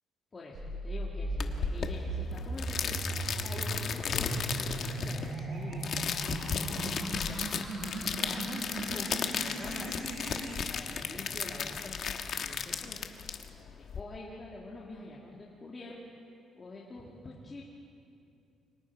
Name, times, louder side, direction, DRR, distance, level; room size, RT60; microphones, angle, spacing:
voice 1, 0.3-3.0 3.4-4.3 4.9-5.9 7.3-7.5 7.8-8.6 8.9-10.1 10.7-13.0 13.8-16.0 16.6-17.6, left 2 dB, 25° left, -4 dB, 2.2 m, -46 dB
sound 1, 0.5-10.5, right 2 dB, 60° right, 6.4 m, -37 dB
sound 2, 1.4-14.0, left 7 dB, 50° left, 1.3 m, -35 dB
29.5 x 24.5 x 4.7 m, 2.6 s
cardioid pair, 160°, 0 cm